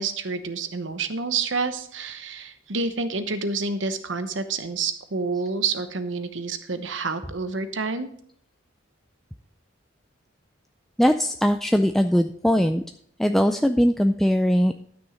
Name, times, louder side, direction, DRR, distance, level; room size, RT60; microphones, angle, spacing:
voice 1, 0.0-8.1, right 4 dB, 70° right, 10 dB, 1.0 m, -28 dB
voice 2, 11.0-12.8 13.2-14.7, equal, ahead, 6 dB, 0.3 m, -20 dB
12.5 x 6.2 x 5.1 m, 0.64 s
head